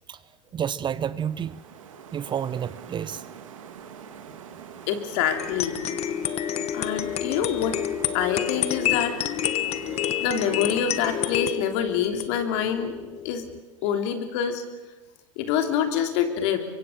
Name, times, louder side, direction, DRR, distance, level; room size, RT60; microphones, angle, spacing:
voice 1, 0.5-1.6 2.1-3.2, right 8 dB, 30° right, 0.8 m, -30 dB
sound 1, 0.9-11.4, right 8 dB, 80° right, 2.7 m, -44 dB
voice 2, 4.9-5.8 6.7-7.8 8.1-9.2 10.2-13.0 13.2-13.5 13.8-14.6 15.4-16.6, left 8 dB, 60° left, 3.1 m, -26 dB
sound 2, 5.3-13.6, left 11 dB, 40° left, 1.3 m, -29 dB
24.0 x 23.5 x 6.6 m
hypercardioid pair, 100°, 17 cm